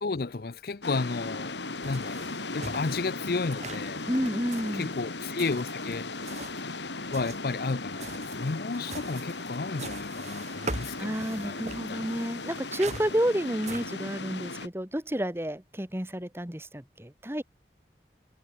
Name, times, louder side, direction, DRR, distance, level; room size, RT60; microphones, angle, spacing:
voice 1, 0.0-1.6 1.8-4.1 4.7-6.1 7.1-12.1, left 3 dB, 55° left, 0.6 m, -33 dB
sound 1, 0.8-14.7, left 3 dB, 85° left, 3.5 m, -37 dB
sound 2, 1.8-6.7 7.0-13.9, right 3 dB, 40° right, 4.3 m, -42 dB
voice 2, 4.1-5.0 11.0-17.4, equal, 15° right, 1.6 m, -30 dB
head